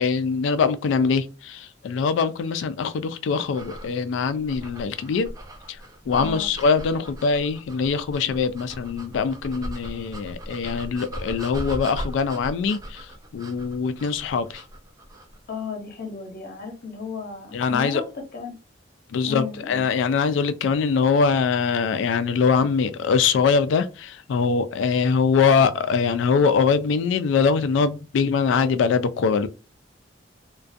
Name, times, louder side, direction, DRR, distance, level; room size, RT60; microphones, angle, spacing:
voice 1, 0.0-5.3 5.7-5.8 6.1-14.6 17.5-18.0 19.1-29.5, left 5 dB, 70° left, 0.3 m, -23 dB
sound 1, 3.5-15.4, equal, 20° right, 0.3 m, -38 dB
voice 2, 6.1-6.5 15.5-18.0 18.3-18.6 19.2-19.9, left 5 dB, 55° left, 0.7 m, -34 dB
2.4 x 2.2 x 2.5 m
head